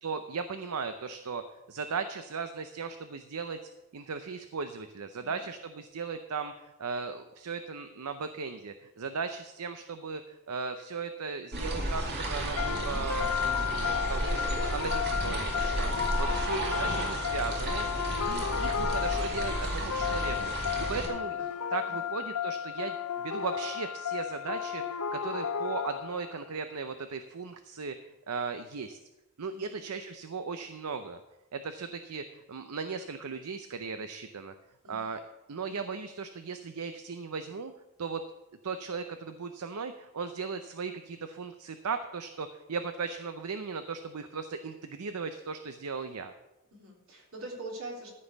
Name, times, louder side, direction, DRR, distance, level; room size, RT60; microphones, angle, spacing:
voice 1, 0.0-3.6 3.9-13.3 13.7-15.9 16.2-17.9 18.2-20.5 20.8-23.0 23.2-28.0 28.3-29.0 29.4-31.2 31.5-34.5 34.9-35.2 35.5-37.7 38.0-38.2 38.6-46.3, right 5 dB, 85° right, 9 dB, 0.6 m, -37 dB
sound 1, 11.5-21.1, right 1 dB, 50° right, 2.3 m, -32 dB
sound 2, 12.6-26.4, left 8 dB, 85° left, 0.8 m, -33 dB
voice 2, 20.7-21.4 21.9-22.1 29.5-29.8 34.8-35.1 46.7-48.1, right 2 dB, 65° right, -2 dB, 3.4 m, -45 dB
14.0 x 5.4 x 7.1 m, 0.99 s
head